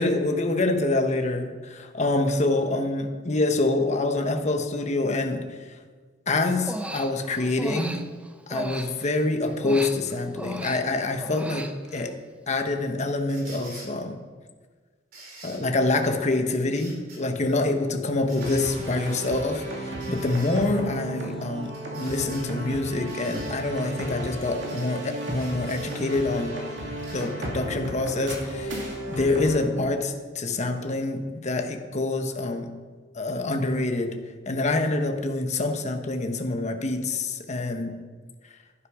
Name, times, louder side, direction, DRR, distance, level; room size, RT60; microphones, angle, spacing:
voice 1, 0.0-5.8 6.3-8.0 8.5-12.2 12.5-14.2 15.4-26.6 27.1-32.7 33.1-38.0, left 2 dB, 40° left, 5 dB, 1.1 m, -26 dB
Human voice, 6.5-9.2 9.6-12.1, right 1 dB, 5° right, 0.6 m, -36 dB
sound 1, 13.3-13.9 15.1-15.6 16.7-17.2 18.3-18.8 20.0-20.6 21.7-22.5 23.1-23.5 24.7-24.9 25.4-26.0 27.0-27.3 28.2-28.3, right 2 dB, 55° right, 3.8 m, -46 dB
sound 2, 18.4-29.6, right 1 dB, 75° right, 2.7 m, -33 dB
11.5 x 10.0 x 5.0 m, 1.5 s
head